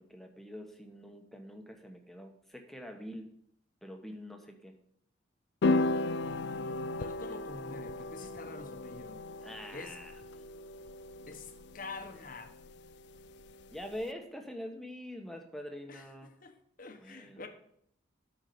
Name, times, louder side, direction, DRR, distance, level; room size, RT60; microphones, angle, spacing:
voice 1, 0.0-3.3 3.8-4.7 9.4-10.1 13.7-16.3 17.0-17.5, equal, ahead, 4 dB, 1.0 m, -44 dB
sound 1, 5.6-14.0, left 2 dB, 60° left, 0.4 m, -35 dB
voice 2, 6.1-9.2 9.7-10.0 11.3-12.5 15.9-17.5, left 3 dB, 45° left, 7 dB, 1.0 m, -47 dB
9.1 x 4.5 x 6.7 m, 0.69 s
head